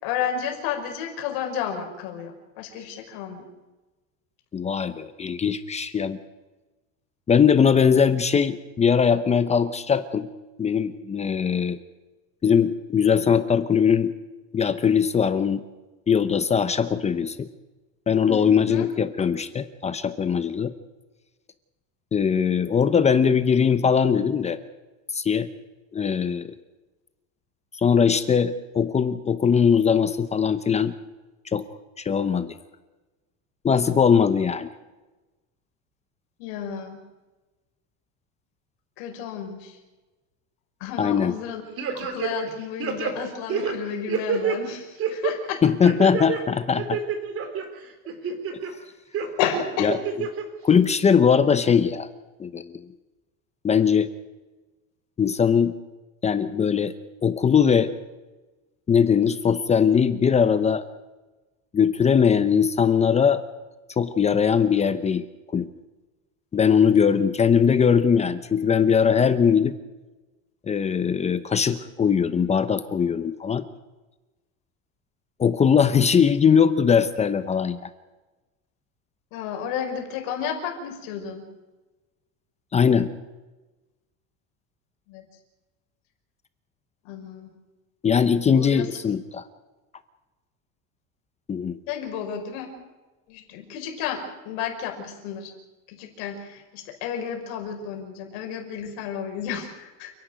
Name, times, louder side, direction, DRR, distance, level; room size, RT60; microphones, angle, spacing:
voice 1, 0.0-3.5 18.3-18.9 36.4-37.0 39.0-39.8 40.8-41.6 41.9-45.6 48.2-48.4 49.4-49.9 79.3-81.5 85.1-85.2 87.0-87.5 88.5-88.9 91.9-92.7 93.3-95.5 95.9-100.1, left 8 dB, 65° left, 4 dB, 5.6 m, -32 dB
voice 2, 4.5-6.2 7.3-10.3 10.6-11.8 12.4-14.1 14.5-15.6 16.1-17.5 18.1-20.7 22.1-24.6 25.1-25.5 25.9-26.5 27.8-31.0 31.5-31.6 32.0-32.6 33.6-34.7 41.0-41.3 45.6-47.0 49.8-50.0 50.6-52.1 52.4-52.8 53.6-54.1 55.2-55.8 56.2-56.9 57.2-57.9 58.9-60.8 61.7-63.4 64.0-65.3 65.5-65.7 66.5-69.7 70.7-73.6 75.4-77.9 82.7-83.1 88.0-89.4 91.5-91.8, left 7 dB, 15° left, 12 dB, 0.8 m, -20 dB
sound 1, 41.8-42.5 42.8-44.6 45.0-45.3 45.8-46.4 46.8-47.6 48.1-48.7 49.1-49.3 49.9-50.4 50.8-50.9, right 6 dB, 35° right, 3.3 m, -27 dB
29.0 x 11.5 x 9.3 m, 1.2 s
cardioid pair, 150°, 38 cm